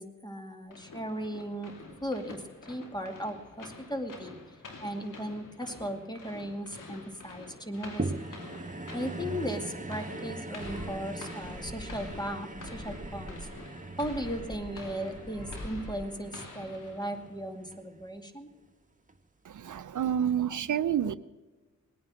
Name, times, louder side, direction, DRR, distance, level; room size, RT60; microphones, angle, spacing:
voice 1, 0.0-1.7 2.0-2.4 2.7-4.4 4.8-8.4 8.9-13.5 14.0-18.5, equal, 15° left, 6 dB, 2.5 m, -37 dB
sound 1, 0.7-17.5, left 3 dB, 90° left, 2.6 m, -48 dB
sound 2, 8.0-18.5 19.1-19.2, right 2 dB, 25° right, 1.7 m, -41 dB
sound 3, 10.6-11.0 11.4-12.3 12.5-13.5 13.9-14.8 15.1-15.9, left 1 dB, 70° left, 4.7 m, -44 dB
voice 2, 19.4-21.2, right 9 dB, 75° right, 14 dB, 0.6 m, -29 dB
19.5 x 9.5 x 6.4 m, 1.2 s
cardioid pair, 50°, 31 cm